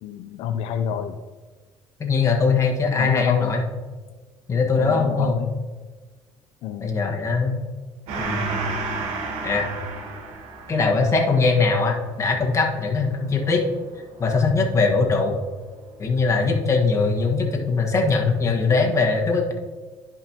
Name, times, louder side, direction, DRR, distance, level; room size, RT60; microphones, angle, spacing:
voice 1, 0.0-1.2 3.0-3.6 4.8-5.5 6.6-6.9, left 8 dB, 75° left, 7 dB, 0.4 m, -28 dB
voice 2, 2.0-3.6 4.5-5.4 6.8-7.6 8.2-8.7 9.4-9.7 10.7-13.6 14.2-15.3 16.0-19.5, left 4 dB, 35° left, 1 dB, 1.5 m, -21 dB
Gong, 8.1-15.0, right 4 dB, 85° right, 1.3 m, -33 dB
11.0 x 5.3 x 2.9 m, 1.4 s
cardioid pair, 100°, 10 cm